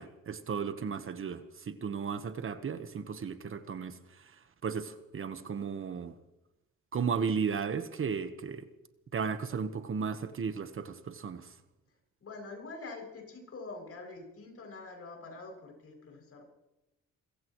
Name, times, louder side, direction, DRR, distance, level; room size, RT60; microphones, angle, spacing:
voice 1, 0.0-4.0 4.6-6.1 6.9-8.6 9.1-11.5, right 6 dB, 45° right, 10 dB, 1.3 m, -35 dB
voice 2, 12.2-16.4, left 3 dB, 50° left, 2 dB, 7.1 m, -45 dB
28.0 x 15.5 x 3.2 m, 0.95 s
cardioid pair, 90°, 30 cm